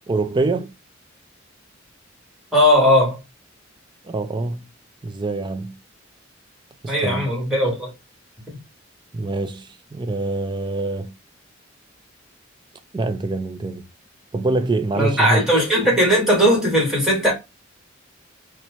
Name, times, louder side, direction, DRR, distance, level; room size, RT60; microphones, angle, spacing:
voice 1, 0.1-0.7 4.0-4.6 5.0-5.7 6.8-7.3 9.1-11.1 12.9-13.8 14.3-15.5 15.8-16.0, right 2 dB, 25° right, 0.4 m, -25 dB
voice 2, 2.5-3.2 6.9-7.9 14.9-17.3, equal, 5° right, 1.6 m, -18 dB
4.2 x 2.2 x 2.8 m
head